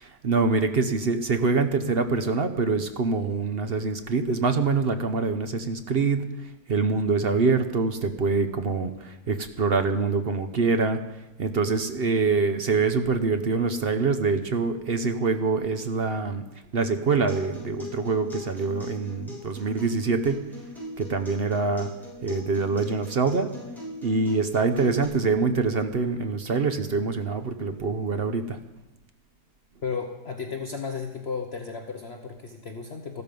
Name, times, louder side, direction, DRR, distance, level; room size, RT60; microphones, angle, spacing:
voice 1, 0.0-11.0 11.4-16.4 16.7-20.4 21.0-21.9 22.2-23.5 24.0-28.6, right 4 dB, 45° right, 8 dB, 0.9 m, -25 dB
Acoustic guitar, 17.1-25.0, left 1 dB, ahead, 6.6 m, -40 dB
voice 2, 29.8-33.2, left 5 dB, 45° left, 4 dB, 1.1 m, -34 dB
14.0 x 12.5 x 5.3 m, 1.0 s
omnidirectional pair, 1.7 m